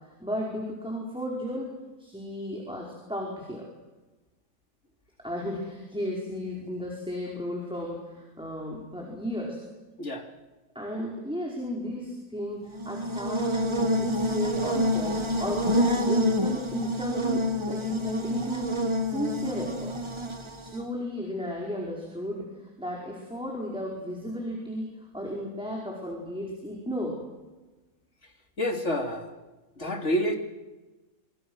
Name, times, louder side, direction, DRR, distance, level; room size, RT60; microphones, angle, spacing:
voice 1, 0.0-1.7 2.0-3.6 5.2-9.6 10.7-13.5 14.0-19.9 20.6-27.2, equal, 5° right, -2 dB, 4.9 m, -34 dB
Buzz, 12.7-20.8, equal, 20° right, 1.4 m, -27 dB
voice 2, 28.6-29.3 29.8-30.4, equal, 55° left, 3 dB, 3.4 m, -28 dB
26.5 x 26.5 x 6.4 m, 1.1 s
omnidirectional pair, 1.5 m